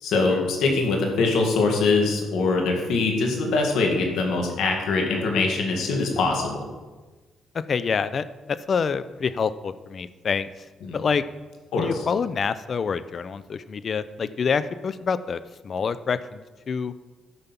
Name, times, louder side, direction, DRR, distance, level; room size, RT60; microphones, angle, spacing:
voice 1, 0.0-6.6 10.8-11.0 11.7-11.9, left 3 dB, 80° left, 2 dB, 2.1 m, -23 dB
voice 2, 7.5-10.5 10.9-11.2 11.8-16.9, left 6 dB, 45° left, 14 dB, 0.5 m, -27 dB
12.5 x 5.3 x 5.9 m, 1.3 s
cardioid pair, 90°, 0 cm